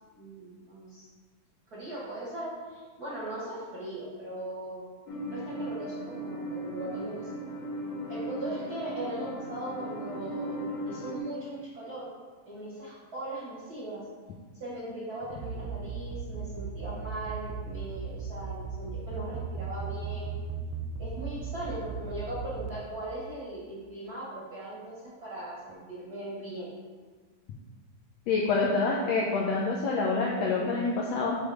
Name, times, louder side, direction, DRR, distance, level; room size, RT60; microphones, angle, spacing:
voice 1, 0.1-1.1 1.7-4.8 5.3-7.3 8.1-10.6 10.9-12.1 12.5-14.0 14.5-20.4 21.0-26.7, right 1 dB, 45° right, -8 dB, 1.3 m, -39 dB
sound 1, 5.1-11.2, right 1 dB, 70° left, 2.0 m, -37 dB
sound 2, 15.3-22.7, right 8 dB, 85° right, 1.4 m, -36 dB
voice 2, 28.3-31.4, left 3 dB, 90° left, -2 dB, 1.4 m, -27 dB
6.6 x 3.4 x 4.8 m, 1.4 s
omnidirectional pair, 3.5 m